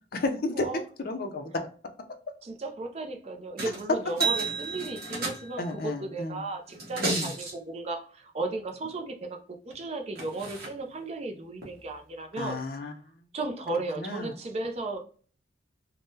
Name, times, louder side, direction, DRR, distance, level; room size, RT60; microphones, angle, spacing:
voice 1, 0.1-1.5 2.3-2.4 3.6-3.7 5.6-6.4 7.0-7.3 12.4-13.2 13.9-14.3, left 2 dB, 50° left, 6 dB, 0.4 m, -33 dB
voice 2, 2.4-12.6 13.3-15.0, right 2 dB, 35° right, 5 dB, 0.4 m, -35 dB
sound 1, 3.6-3.8 4.1-5.7 6.7-7.5 9.7-9.8 10.2-10.7 11.6-11.7, right 4 dB, 50° right, 1.0 m, -32 dB
3.6 x 2.0 x 2.6 m, 0.42 s
head